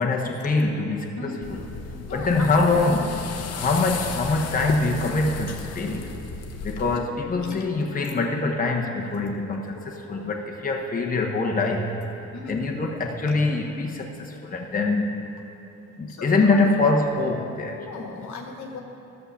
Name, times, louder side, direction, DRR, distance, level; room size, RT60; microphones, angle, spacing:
voice 1, 0.0-1.3 2.1-3.1 3.5-6.2 6.6-15.1 16.0-17.8, left 3 dB, 30° left, 1 dB, 1.0 m, -24 dB
sound 1, 1.4-7.0, left 4 dB, 55° left, 0.9 m, -35 dB
voice 2, 2.1-3.0 7.4-7.6 9.7-10.4 12.3-12.5 16.1-16.9 17.8-18.8, left 4 dB, 75° left, 2 dB, 1.5 m, -38 dB
11.5 x 6.6 x 6.9 m, 2.9 s
cardioid pair, 90°, 30 cm